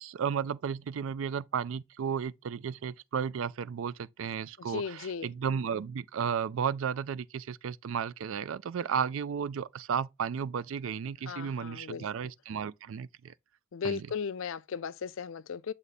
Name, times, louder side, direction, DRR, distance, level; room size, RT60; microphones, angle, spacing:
voice 1, 0.0-13.3 13.8-14.1, right 7 dB, 70° right, 0.4 m, -33 dB
voice 2, 4.6-5.3 11.3-12.1 13.7-15.7, left 6 dB, 70° left, 0.4 m, -36 dB
6.7 x 3.6 x 4.0 m
head